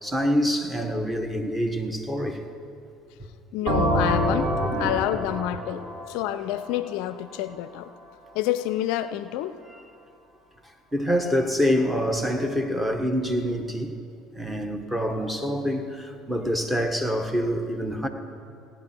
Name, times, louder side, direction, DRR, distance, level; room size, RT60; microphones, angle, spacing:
voice 1, 0.0-2.4 4.6-4.7 5.7-5.8 9.7-9.8 10.9-13.9 14.3-18.1, equal, 10° right, 5 dB, 1.4 m, -26 dB
voice 2, 3.5-7.9 8.3-9.6, left 13 dB, 70° left, 13 dB, 0.4 m, -28 dB
sound 1, 3.7-7.4, equal, 60° right, 2.6 m, -27 dB
17.0 x 10.0 x 4.5 m, 2.5 s
hypercardioid pair, 65°, 0 cm